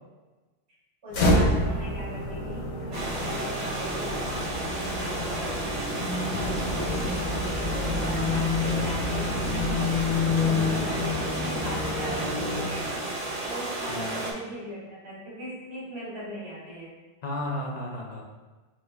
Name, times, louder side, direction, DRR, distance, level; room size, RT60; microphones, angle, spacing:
voice 1, 1.0-7.3 7.7-13.1 13.4-17.0, equal, 60° right, -8 dB, 1.8 m, -40 dB
sound 1, 1.1-13.1, left 2 dB, 70° left, 1.0 m, -28 dB
sound 2, 2.9-14.3, right 2 dB, 45° right, 0.5 m, -33 dB
voice 2, 8.0-8.3 10.6-11.0 13.9-14.2 17.2-18.2, left 1 dB, 55° left, -1 dB, 0.5 m, -34 dB
4.4 x 2.3 x 3.3 m, 1.2 s
omnidirectional pair, 1.3 m